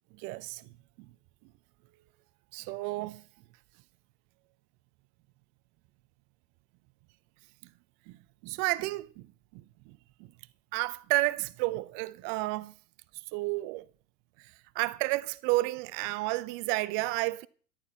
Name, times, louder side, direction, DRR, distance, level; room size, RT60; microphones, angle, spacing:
voice 1, 0.2-0.7 1.0-1.1 2.5-3.2 8.1-9.3 9.5-10.3 10.7-12.7 13.3-13.9 14.7-17.5, right 20 dB, 30° right, 0.7 m, -31 dB
13.5 x 13.5 x 4.3 m
figure-of-eight pair, 110°, 45 cm